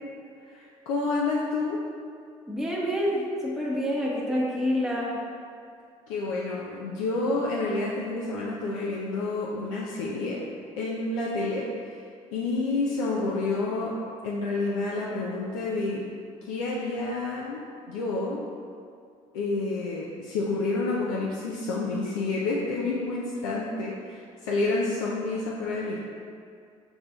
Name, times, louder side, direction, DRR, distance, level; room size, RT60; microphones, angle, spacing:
voice 1, 0.4-1.8 6.1-10.4 10.8-12.0 12.3-16.0 16.5-17.6 17.9-18.4 19.3-26.0, left 3 dB, 80° left, -4 dB, 0.5 m, -29 dB
voice 2, 2.5-5.2, equal, ahead, -5 dB, 0.8 m, -27 dB
5.1 x 4.3 x 2.2 m, 2.3 s
hypercardioid pair, 55°, 16 cm